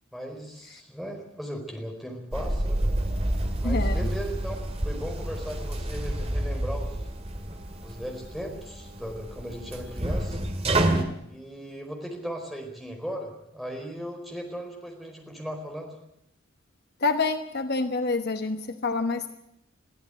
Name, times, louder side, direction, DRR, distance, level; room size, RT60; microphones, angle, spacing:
voice 1, 0.1-2.8 3.6-4.5 4.8-7.1 7.8-10.4 11.3-16.0, equal, ahead, 1 dB, 4.5 m, -37 dB
sound 1, 2.3-11.0, right 1 dB, 30° right, 2.2 m, -29 dB
voice 2, 3.6-4.0 17.0-19.3, left 3 dB, 50° left, 8 dB, 1.0 m, -27 dB
22.5 x 14.5 x 9.1 m, 0.80 s
head